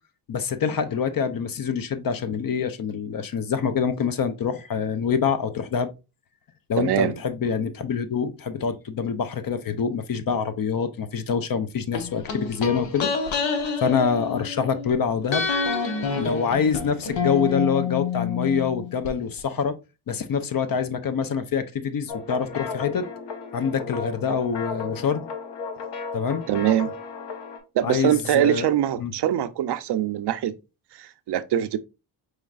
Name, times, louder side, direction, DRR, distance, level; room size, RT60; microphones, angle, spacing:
voice 1, 0.3-5.9 6.7-13.1 13.8-15.5 16.2-19.8 20.1-23.1 23.5-25.3 26.1-26.4 27.8-28.7 29.0-29.1, left 6 dB, 50° left, 0.7 m, -25 dB
voice 2, 6.7-7.2 26.5-26.9 27.8-30.5 31.0-31.8, right 11 dB, 65° right, 0.5 m, -23 dB
sound 1, 11.9-14.9 15.3-19.1 19.4-19.5, left 5 dB, 85° left, 1.0 m, -28 dB
sound 2, 22.1-27.6, left 5 dB, 65° left, 1.1 m, -34 dB
4.8 x 3.2 x 2.4 m
cardioid pair, 70°, 45 cm